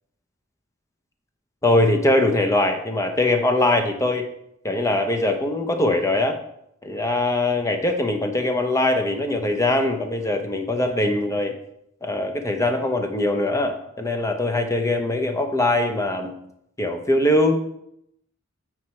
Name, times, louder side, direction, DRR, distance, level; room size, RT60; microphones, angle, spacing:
voice 1, 1.6-4.2 4.6-6.4 6.8-11.6 12.0-16.3 16.8-17.6, left 1 dB, 15° left, 5 dB, 0.7 m, -22 dB
7.9 x 4.5 x 4.3 m, 0.76 s
head